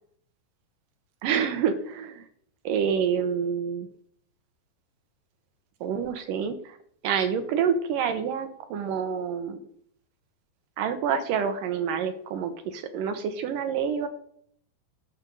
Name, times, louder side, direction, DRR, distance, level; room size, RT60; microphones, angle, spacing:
voice 1, 1.2-2.3 2.6-3.9 5.8-6.8 7.0-9.6 10.8-14.1, right 7 dB, 65° right, 9 dB, 2.5 m, -27 dB
12.5 x 6.4 x 6.5 m, 0.64 s
omnidirectional pair, 4.5 m